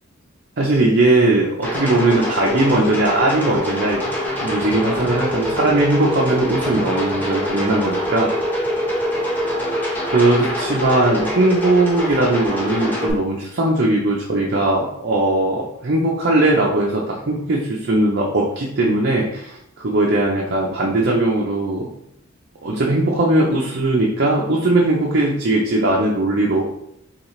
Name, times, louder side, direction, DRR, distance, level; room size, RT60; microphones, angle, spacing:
voice 1, 0.6-4.0 4.4-8.3 10.1-21.9 22.6-26.6, right 2 dB, 50° right, -3 dB, 0.6 m, -19 dB
sound 1, 1.6-13.1, equal, 10° left, 1.0 m, -24 dB
5.7 x 2.4 x 3.2 m, 0.76 s
head